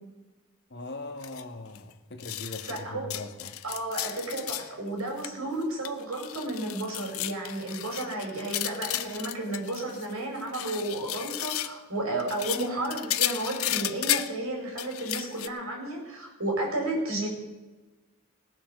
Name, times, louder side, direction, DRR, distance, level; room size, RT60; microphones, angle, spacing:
voice 1, 0.7-3.5, left 2 dB, 55° left, 3 dB, 1.8 m, -40 dB
sound 1, 1.2-1.4 1.8-1.9 2.2-2.8 3.1-4.7 5.0-5.3 5.6-10.1 10.4-11.8 12.2-14.4 14.8-15.5, left 14 dB, 85° left, 0.6 m, -33 dB
voice 2, 2.6-3.1 3.6-17.3, right 2 dB, 85° right, 0 dB, 4.9 m, -32 dB
19.0 x 7.4 x 6.7 m, 1.2 s
head